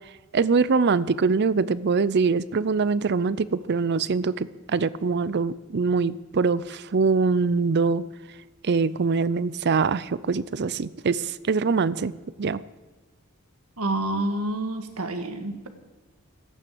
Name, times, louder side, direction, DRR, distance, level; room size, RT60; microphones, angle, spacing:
voice 1, 0.3-8.1 8.6-12.1 12.4-12.6, right 4 dB, 50° right, 18 dB, 0.5 m, -23 dB
voice 2, 13.8-15.7, right 1 dB, 85° right, 7 dB, 1.7 m, -28 dB
14.0 x 9.3 x 7.8 m, 1.3 s
head